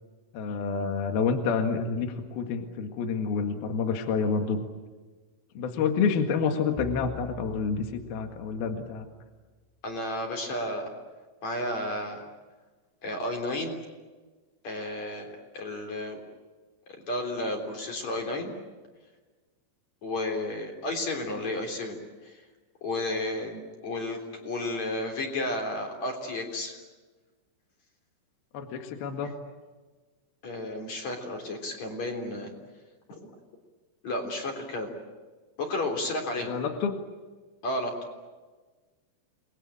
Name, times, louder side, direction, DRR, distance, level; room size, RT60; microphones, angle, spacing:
voice 1, 0.3-4.6 5.5-9.1 28.5-29.3 36.5-36.9, left 5 dB, 60° left, 5 dB, 3.3 m, -28 dB
sound 1, 6.8-9.2, left 9 dB, 75° left, 3.1 m, -44 dB
voice 2, 9.8-10.9 11.4-12.2 13.0-13.8 14.6-16.2 16.9-18.5 20.0-22.0 22.2-22.4 22.8-26.8 30.4-32.5 33.1-33.3 34.0-34.9 35.6-36.5 37.6-37.9, left 1 dB, 40° left, 2 dB, 4.4 m, -32 dB
29.5 x 21.0 x 8.9 m, 1.3 s
omnidirectional pair, 5.6 m